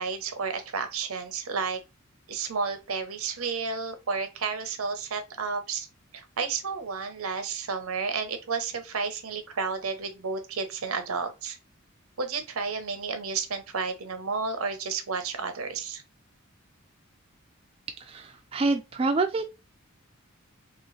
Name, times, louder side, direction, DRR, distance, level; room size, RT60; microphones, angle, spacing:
voice 1, 0.0-1.8 2.3-5.9 6.1-11.6 12.2-16.0, right 5 dB, 85° right, 0.7 m, -31 dB
voice 2, 18.0-19.5, right 3 dB, 25° right, 0.3 m, -27 dB
3.1 x 2.9 x 3.0 m
head